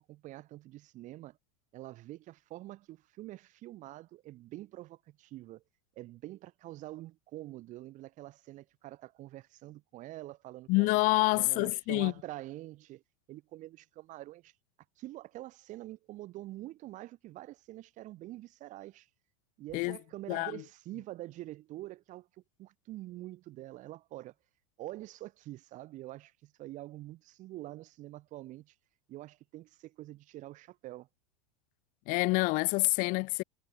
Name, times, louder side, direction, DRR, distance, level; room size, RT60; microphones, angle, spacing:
voice 1, 0.0-1.4 1.7-5.6 6.0-11.0 11.3-13.0 13.3-14.5 15.0-19.1 19.6-22.3 22.6-24.3 24.8-28.7 29.1-31.1, right 16 dB, 45° right, 3.0 m, -46 dB
voice 2, 10.7-12.1 19.7-20.0 20.3-20.6 32.1-33.4, left 26 dB, 50° left, 0.5 m, -27 dB
supercardioid pair, 115°, 18 cm